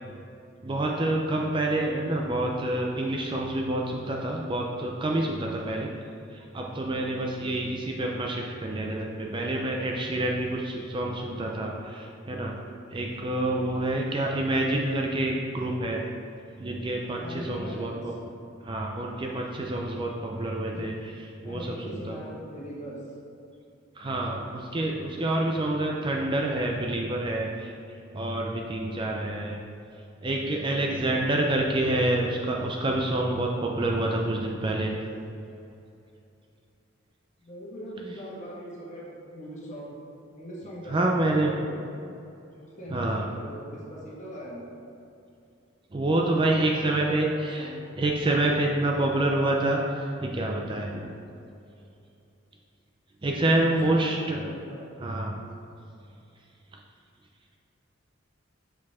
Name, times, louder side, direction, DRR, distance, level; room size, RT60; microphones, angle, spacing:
voice 1, 0.6-5.9 6.3-12.6 12.9-16.1 16.6-18.1 18.6-20.9 21.4-22.2 24.0-27.7 28.1-29.6 30.2-35.0 40.9-41.5 42.9-43.3 45.9-47.7 48.0-51.1 53.2-54.5 55.0-55.4, right 1 dB, 25° right, 0 dB, 0.4 m, -27 dB
voice 2, 17.1-18.1 20.7-20.8 21.4-23.0 37.4-39.9 40.3-41.8 42.5-44.7 46.4-47.8 53.5-54.8, equal, 35° left, -5 dB, 1.5 m, -41 dB
6.1 x 5.1 x 3.6 m, 2.7 s
head